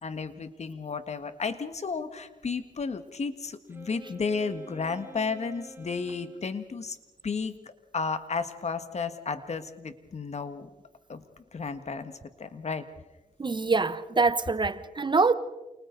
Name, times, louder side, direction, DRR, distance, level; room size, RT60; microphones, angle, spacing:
voice 1, 0.0-7.0 7.2-10.7 11.1-11.2 11.5-12.8, left 4 dB, 50° left, 1.7 m, -33 dB
Wind instrument woodwind instrument, 3.7-6.6, right 1 dB, 15° right, 3.2 m, -48 dB
voice 2, 13.4-15.3, right 4 dB, 30° right, 0.9 m, -24 dB
28.5 x 28.5 x 4.0 m
cardioid pair, 80°, 15 cm